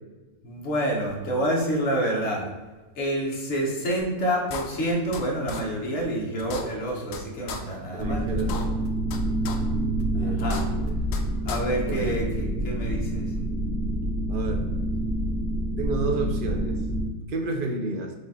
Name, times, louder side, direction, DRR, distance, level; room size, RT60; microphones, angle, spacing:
voice 1, 0.4-2.4 3.0-8.6 10.2-10.6 11.4-13.3, right 1 dB, 50° left, -2 dB, 1.4 m, -28 dB
sound 1, 4.0-4.1 4.5-5.2 5.5-5.6 6.0-6.1 6.4-7.2 7.5-7.6 8.0-8.1 8.4-9.2 9.4-9.6 10.0-10.1 10.4-11.2 11.5-11.6, left 5 dB, 70° left, 0.9 m, -35 dB
voice 2, 7.9-8.8 10.1-10.9 11.8-12.2 14.3-14.6 15.8-16.8 17.3-18.1, right 3 dB, 60° right, 2 dB, 0.5 m, -30 dB
sound 2, 8.0-17.0, right 1 dB, 80° right, 1.6 m, -27 dB
5.1 x 2.5 x 4.0 m, 1.2 s
omnidirectional pair, 1.5 m